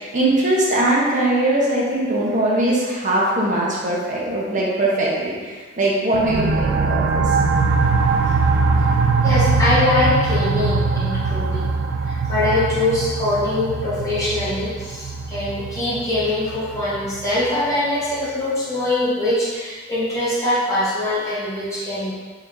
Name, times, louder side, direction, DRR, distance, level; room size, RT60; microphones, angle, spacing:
voice 1, 0.0-7.2, right 1 dB, 40° right, -5 dB, 0.9 m, -21 dB
sound 1, 6.1-17.5, right 4 dB, 70° right, 0.3 m, -21 dB
voice 2, 9.2-11.8 12.0-22.1, left 1 dB, 15° left, -11 dB, 1.4 m, -23 dB
3.8 x 3.4 x 3.1 m, 1.4 s
head